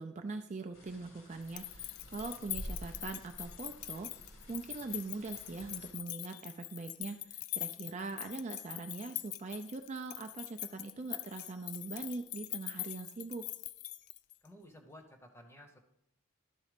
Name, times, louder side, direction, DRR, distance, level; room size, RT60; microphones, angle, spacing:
voice 1, 0.0-4.1 4.5-13.4, right 3 dB, 30° right, 6 dB, 0.4 m, -42 dB
sound 1, 0.7-5.9, equal, 60° left, 1.5 m, -50 dB
sound 2, 1.4-14.5, left 15 dB, 85° left, 0.4 m, -43 dB
voice 2, 14.4-15.8, left 1 dB, 10° left, 4 dB, 0.8 m, -54 dB
12.0 x 4.1 x 5.0 m, 0.80 s
head